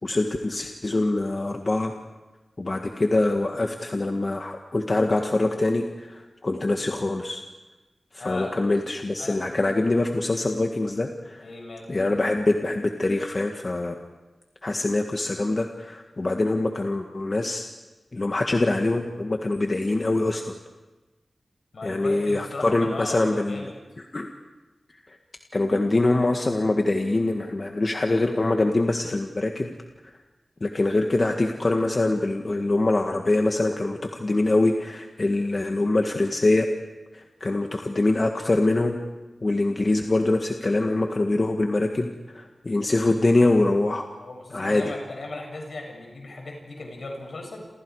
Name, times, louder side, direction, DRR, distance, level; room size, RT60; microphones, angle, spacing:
voice 1, 0.0-1.9 2.6-7.4 8.1-11.5 11.9-14.0 14.6-17.7 18.1-20.5 21.8-23.7 24.1-24.3 25.1-25.2 25.5-29.7 30.0-30.1 30.6-36.7 37.1-39.0 39.4-44.1 44.5-44.9, left 2 dB, 45° left, 3 dB, 1.8 m, -24 dB
voice 2, 8.2-8.6 9.2-9.4 11.4-11.9 21.7-23.7 44.2-47.6, left 2 dB, 75° left, 1 dB, 7.4 m, -37 dB
30.0 x 28.0 x 4.9 m, 1.2 s
wide cardioid pair, 70°, 0 cm